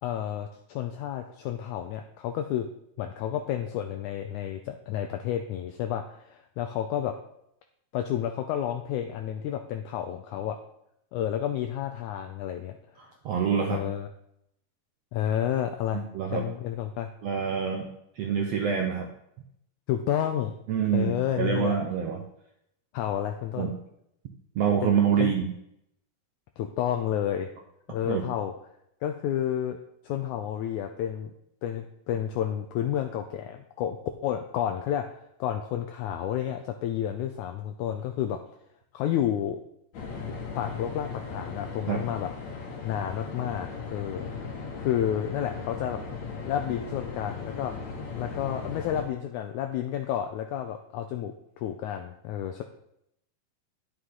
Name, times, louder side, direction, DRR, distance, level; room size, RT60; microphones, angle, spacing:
voice 1, 0.0-2.7 3.0-7.1 7.9-10.6 11.1-12.8 13.7-14.1 15.1-16.0 16.3-17.1 19.9-20.5 20.9-21.8 22.9-23.7 24.8-24.9 25.2-25.3 26.6-27.5 27.9-28.5 29.0-29.8 30.0-31.3 31.6-34.0 34.2-35.0 35.4-38.4 38.9-39.6 40.5-42.3 42.8-44.3 44.8-46.0 46.4-47.7 48.1-52.6, left 10 dB, 80° left, 5 dB, 1.8 m, -30 dB
voice 2, 13.0-13.8 15.9-16.4 17.2-17.9 18.2-19.1 20.7-22.2 23.6-23.7 24.6-25.5 28.0-28.2 41.9-42.0, right 7 dB, 75° right, 2 dB, 1.5 m, -26 dB
sound 1, 39.9-49.0, left 5 dB, 60° left, 2.4 m, -37 dB
10.0 x 7.9 x 3.8 m, 0.76 s
omnidirectional pair, 3.9 m